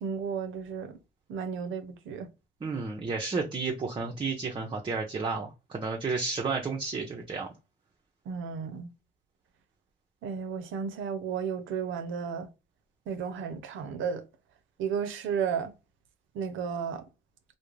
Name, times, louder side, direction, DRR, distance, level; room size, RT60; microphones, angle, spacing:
voice 1, 0.0-0.9 1.3-2.3 8.3-8.9 10.2-12.5 13.1-14.2 14.8-15.7 16.3-17.0, right 6 dB, 80° right, 0.5 m, -33 dB
voice 2, 2.6-7.5, right 4 dB, 25° right, 0.5 m, -32 dB
2.4 x 2.1 x 3.0 m
cardioid pair, 90°, 20 cm